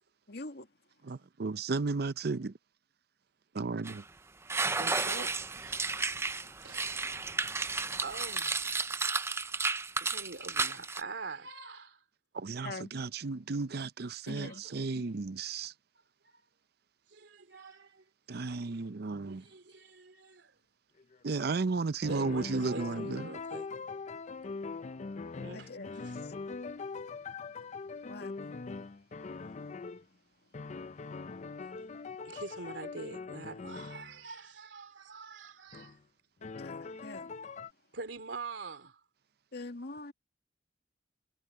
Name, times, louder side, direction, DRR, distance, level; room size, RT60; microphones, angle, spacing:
voice 1, 0.3-0.7 12.6-12.9 14.3-14.6 14.9-15.0 25.5-26.3 28.0-28.6 36.6-37.4 39.5-40.1, left 2 dB, 65° left, 2.1 m, -44 dB
voice 2, 1.0-2.5 3.5-4.0 12.3-15.7 18.3-19.4 21.2-23.3, right 3 dB, 60° right, 0.6 m, -34 dB
sound 1, 3.9-4.0 4.5-11.0, right 4 dB, 15° right, 0.5 m, -33 dB
voice 3, 4.5-6.0 6.6-7.1 8.0-8.9 10.0-12.0 14.3-14.8 16.2-16.4 17.1-18.0 19.3-20.5 22.1-23.7 25.4-26.2 32.2-36.0 37.9-39.0, right 3 dB, 90° right, 2.9 m, -45 dB
sound 2, 21.0-21.7 22.0-30.0 30.5-34.2 35.7-36.0 36.4-37.7, left 4 dB, 40° left, 0.5 m, -42 dB
head